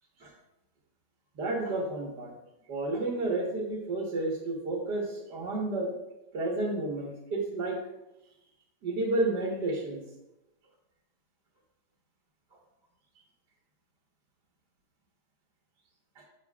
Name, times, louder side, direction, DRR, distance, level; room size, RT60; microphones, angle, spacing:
voice 1, 1.4-2.3 2.7-5.9 6.3-7.8 8.8-10.0 16.2-16.3, right 2 dB, 60° right, -3 dB, 1.9 m, -31 dB
8.7 x 7.5 x 2.3 m, 0.92 s
omnidirectional pair, 2.1 m